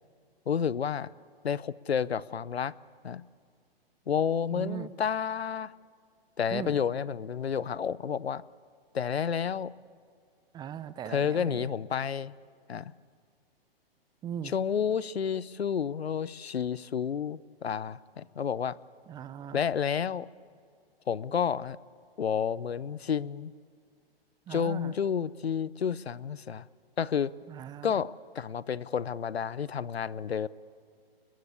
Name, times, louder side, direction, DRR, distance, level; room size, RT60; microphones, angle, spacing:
voice 1, 0.5-1.1 1.4-2.7 3.0-3.2 4.1-5.7 6.4-8.4 8.9-9.7 11.1-12.3 12.7-12.9 14.4-18.8 19.5-20.3 21.1-21.8 22.2-23.5 24.5-26.7 27.0-27.3 27.8-30.5, left 7 dB, 85° left, 20 dB, 0.8 m, -30 dB
voice 2, 4.5-4.9 6.5-6.7 10.5-11.7 14.2-14.5 19.1-19.6 24.5-24.9 27.5-27.9, right 9 dB, 15° right, 15 dB, 0.6 m, -39 dB
30.0 x 22.0 x 8.3 m, 2.1 s
hypercardioid pair, 125°, 31 cm